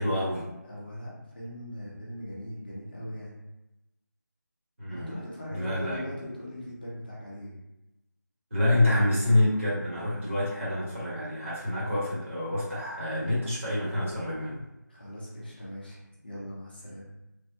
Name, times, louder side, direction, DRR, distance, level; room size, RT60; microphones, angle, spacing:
voice 1, 0.0-0.5 4.8-5.1 5.5-6.0 8.5-14.6, left 1 dB, 40° right, -8 dB, 1.2 m, -27 dB
voice 2, 0.6-3.4 4.9-7.6 14.9-17.1, left 1 dB, 30° left, -6 dB, 0.7 m, -40 dB
3.2 x 2.1 x 2.7 m, 0.95 s
figure-of-eight pair, 170°, 10 cm